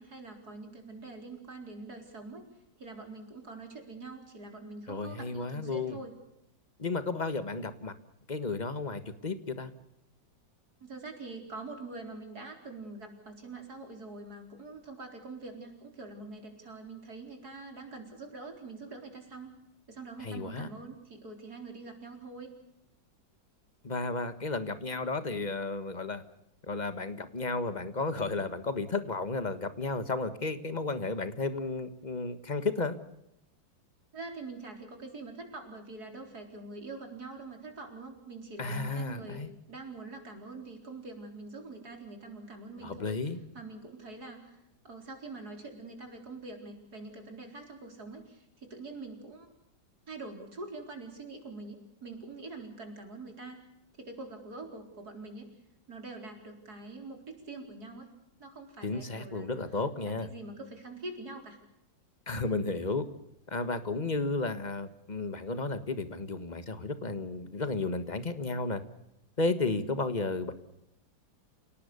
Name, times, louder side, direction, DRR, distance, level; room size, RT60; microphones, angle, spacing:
voice 1, 0.0-2.5 2.8-6.1 10.8-19.5 19.9-22.5 34.1-49.5 50.1-53.6 54.0-55.5 55.9-58.1 58.4-59.5 60.0-61.6 69.8-69.9, right 3 dB, 50° right, 4 dB, 4.6 m, -44 dB
voice 2, 4.9-6.0 6.8-7.9 8.3-9.7 20.2-20.7 23.8-26.2 26.6-33.0 38.6-39.5 42.8-43.4 58.8-60.3 62.3-63.1 63.5-68.8 69.4-70.5, left 3 dB, 25° left, 11 dB, 1.5 m, -33 dB
29.0 x 18.0 x 6.9 m, 0.79 s
omnidirectional pair, 2.1 m